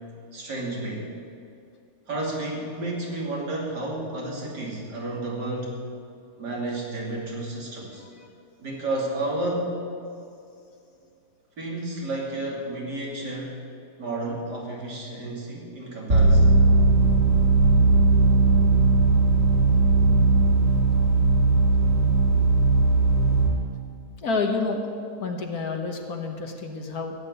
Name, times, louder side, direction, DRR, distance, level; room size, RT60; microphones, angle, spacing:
voice 1, 0.3-1.1 2.1-5.8 6.4-8.0 8.6-9.8 11.6-13.6 14.0-16.5, right 2 dB, 90° right, -3 dB, 3.4 m, -31 dB
voice 2, 8.0-8.3 24.2-24.9 25.2-27.1, left 3 dB, 65° left, 3 dB, 1.7 m, -29 dB
sound 1, 16.1-23.5, right 3 dB, 50° right, 2.9 m, -18 dB
15.0 x 7.5 x 9.8 m, 2.5 s
omnidirectional pair, 1.8 m